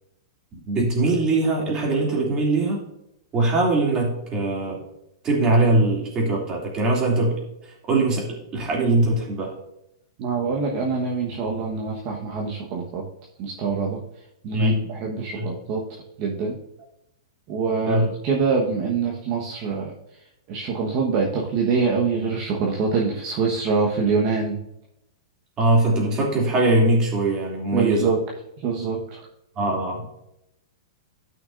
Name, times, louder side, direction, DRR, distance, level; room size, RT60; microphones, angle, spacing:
voice 1, 0.5-2.8 3.3-4.8 5.2-8.3 8.5-9.5 14.5-14.8 15.3-15.5 17.9-18.1 25.6-28.1 29.6-30.1, right 2 dB, 25° right, -2 dB, 2.6 m, -21 dB
voice 2, 10.2-13.0 13.4-14.0 14.4-15.8 16.2-16.6 17.5-20.0 20.5-24.6 27.7-28.2 28.6-29.2, right 5 dB, 40° right, -1 dB, 1.2 m, -24 dB
13.0 x 5.9 x 2.6 m, 0.82 s
hypercardioid pair, 140°, 3 cm